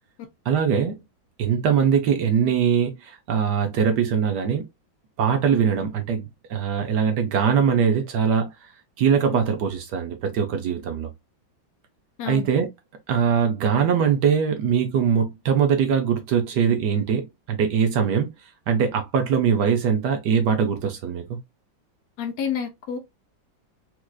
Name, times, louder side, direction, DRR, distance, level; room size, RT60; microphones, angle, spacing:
voice 1, 0.5-1.0 1.4-4.6 5.2-8.5 9.0-11.1 12.3-12.7 13.1-18.3 18.7-21.4, right 7 dB, 70° right, 1.2 m, -22 dB
voice 2, 12.2-12.5 22.2-23.0, left 8 dB, 65° left, 1.0 m, -29 dB
4.4 x 2.4 x 2.3 m
omnidirectional pair, 2.1 m